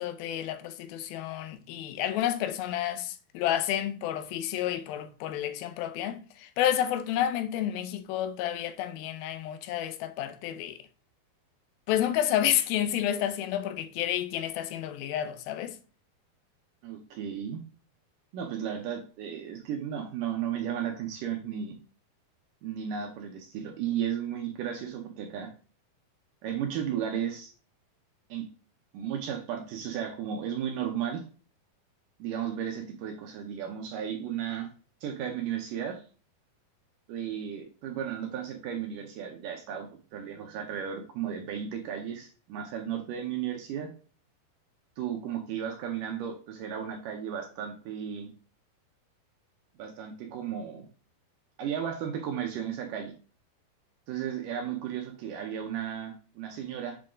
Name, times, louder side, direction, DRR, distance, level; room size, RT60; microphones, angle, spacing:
voice 1, 0.0-10.8 11.9-15.8, left 11 dB, 80° left, 2.3 m, -30 dB
voice 2, 16.8-17.6 18.3-21.8 22.6-25.5 26.4-27.5 28.3-28.5 28.9-31.2 32.2-34.7 35.0-36.0 37.1-43.9 45.0-48.3 49.8-50.9 51.6-53.1 54.1-57.0, right 9 dB, 75° right, 2.0 m, -34 dB
7.5 x 3.7 x 3.7 m
omnidirectional pair, 4.4 m